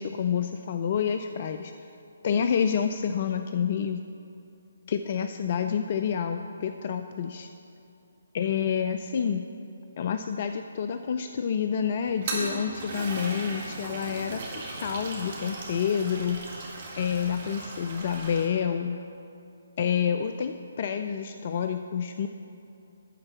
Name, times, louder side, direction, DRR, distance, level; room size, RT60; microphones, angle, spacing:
voice 1, 0.0-1.7 2.2-4.0 4.9-7.5 8.3-9.5 10.0-16.4 17.0-19.0 19.8-22.3, left 7 dB, 40° left, 7 dB, 0.3 m, -28 dB
Toilet flush, 12.1-18.5, right 2 dB, 40° right, 1.8 m, -37 dB
11.5 x 4.4 x 7.2 m, 2.7 s
figure-of-eight pair, 140°, 0 cm